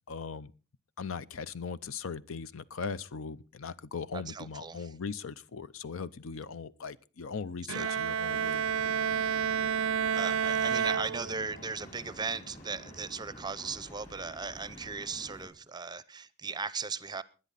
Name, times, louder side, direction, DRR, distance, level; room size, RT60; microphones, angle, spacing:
voice 1, 0.1-0.5 1.0-8.6, left 5 dB, 70° left, 0.6 m, -39 dB
voice 2, 4.1-4.9 7.7-8.0 10.1-17.2, right 5 dB, 20° right, 0.6 m, -37 dB
Bowed string instrument, 7.7-11.7, right 7 dB, 80° right, 0.6 m, -30 dB
Stream / Boat Water vehicle, 8.3-15.5, equal, 40° left, 4.8 m, -49 dB
20.0 x 10.0 x 4.0 m
head